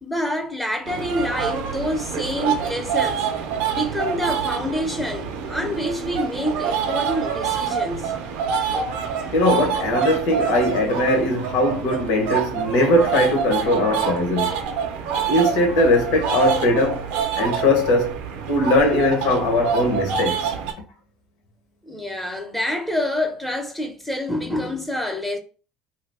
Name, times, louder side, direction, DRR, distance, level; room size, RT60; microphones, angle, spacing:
voice 1, 0.0-3.3 3.7-8.1 21.8-25.4, left 1 dB, 5° left, 0.8 m, -27 dB
sound 1, 0.8-20.7, right 7 dB, 80° right, 0.6 m, -26 dB
voice 2, 9.3-14.5 15.3-17.0 17.3-18.2 18.5-20.5, left 1 dB, 80° left, 1.1 m, -20 dB
2.8 x 2.3 x 3.4 m
supercardioid pair, 95°, 2 cm